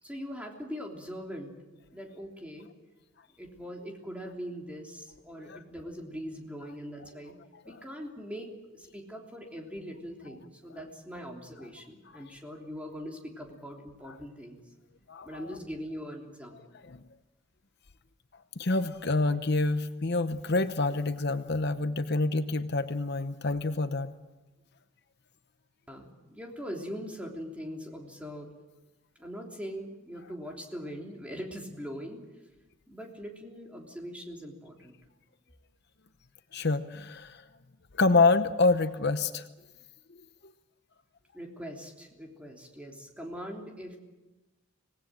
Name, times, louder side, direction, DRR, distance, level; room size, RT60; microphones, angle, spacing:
voice 1, 0.0-1.5 1.9-2.7 3.4-7.3 7.6-14.6 15.2-16.7 25.9-28.5 29.2-32.2 32.9-34.9 41.3-44.0, equal, 5° right, 0 dB, 3.3 m, -41 dB
voice 2, 15.1-15.5 16.8-17.0 18.6-24.1 36.5-37.4 38.0-39.5, left 3 dB, 55° left, 10 dB, 0.9 m, -27 dB
26.0 x 18.5 x 7.6 m, 1.1 s
head